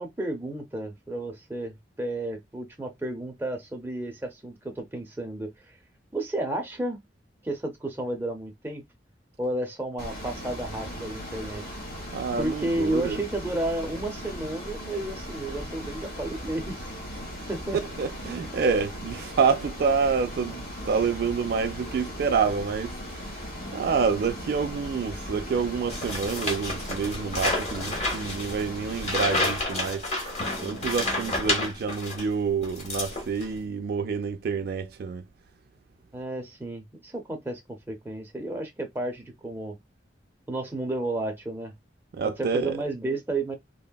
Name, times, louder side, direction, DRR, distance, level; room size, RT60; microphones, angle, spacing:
voice 1, 0.0-5.8 6.1-7.0 7.4-8.8 9.4-11.6 12.4-16.8 17.5-17.8 31.1-31.3 36.1-39.8 40.5-41.7 42.2-43.5, right 1 dB, 15° right, 0.6 m, -32 dB
Ocean, 10.0-29.6, equal, 65° left, 1.3 m, -38 dB
voice 2, 12.1-13.2 18.0-23.3 23.7-30.1 30.6-35.2 42.1-42.8, right 5 dB, 60° right, 0.3 m, -27 dB
sound 1, 23.6-27.5 28.4-28.5 30.4-33.7 34.0-34.1, equal, 90° left, 1.0 m, -46 dB
sound 2, 25.9-32.3 32.6-33.6, left 2 dB, 40° left, 0.9 m, -30 dB
3.4 x 2.1 x 2.2 m
head